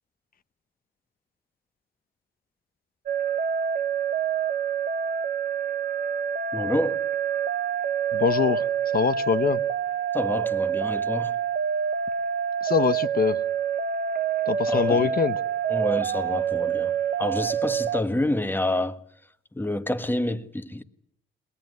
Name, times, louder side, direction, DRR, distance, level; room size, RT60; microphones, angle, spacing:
sound 1, 3.1-18.0, right 8 dB, 50° right, 1.1 m, -27 dB
voice 1, 6.5-7.0 10.1-11.3 14.7-15.1 15.7-16.9 17.2-19.0 19.5-20.8, left 1 dB, 10° left, 1.4 m, -28 dB
voice 2, 8.1-8.7 8.9-9.6 12.6-13.4 14.5-15.4, left 6 dB, 50° left, 1.0 m, -23 dB
21.5 x 20.0 x 9.4 m
cardioid pair, 90°, 20 cm